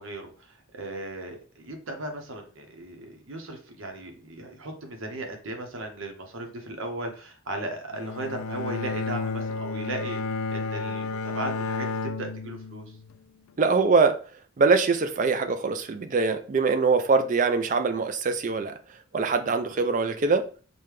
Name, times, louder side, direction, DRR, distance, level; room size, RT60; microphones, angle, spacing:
voice 1, 0.0-12.9, right 2 dB, 80° right, 0.9 m, -37 dB
Bowed string instrument, 7.9-13.2, left 4 dB, 80° left, 0.3 m, -32 dB
voice 2, 13.6-14.2 14.6-18.7 19.1-20.5, right 4 dB, 40° right, 0.4 m, -23 dB
5.2 x 2.2 x 3.1 m
head